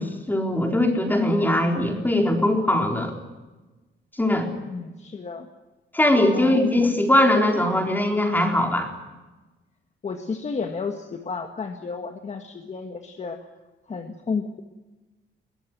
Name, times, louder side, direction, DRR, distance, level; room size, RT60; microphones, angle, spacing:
voice 1, 0.0-3.1 4.2-4.5 5.9-8.9, left 1 dB, 10° left, 3 dB, 4.0 m, -21 dB
voice 2, 4.6-5.5 6.3-6.9 10.0-13.5 13.9-14.6, left 4 dB, 35° left, 5 dB, 1.7 m, -32 dB
22.0 x 17.5 x 9.6 m, 1.2 s
wide cardioid pair, 155°, 19 cm